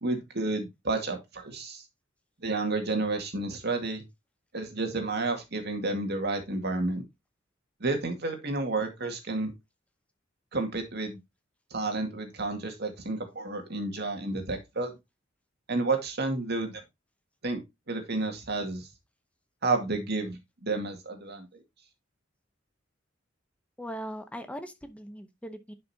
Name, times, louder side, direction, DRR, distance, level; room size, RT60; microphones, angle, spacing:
voice 1, 0.0-1.8 2.4-4.0 4.5-7.0 7.8-9.5 10.5-11.2 11.7-14.9 15.7-16.8 17.4-17.6 17.9-18.9 19.6-21.6, right 3 dB, 55° right, 2.0 m, -31 dB
voice 2, 23.8-25.7, equal, 5° left, 0.8 m, -40 dB
10.5 x 5.4 x 2.8 m
head